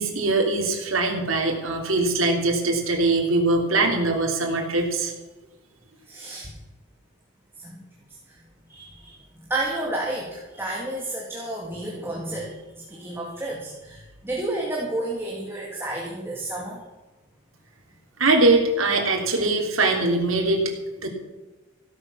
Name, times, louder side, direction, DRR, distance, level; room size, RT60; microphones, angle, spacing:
voice 1, 0.0-5.1 18.2-20.7 21.0-21.1, right 2 dB, 90° right, 1 dB, 3.5 m, -22 dB
voice 2, 6.1-6.5 7.6-7.8 8.7-9.2 9.5-16.8, right 1 dB, 10° right, -3 dB, 2.4 m, -31 dB
16.5 x 9.5 x 6.9 m, 1.1 s
head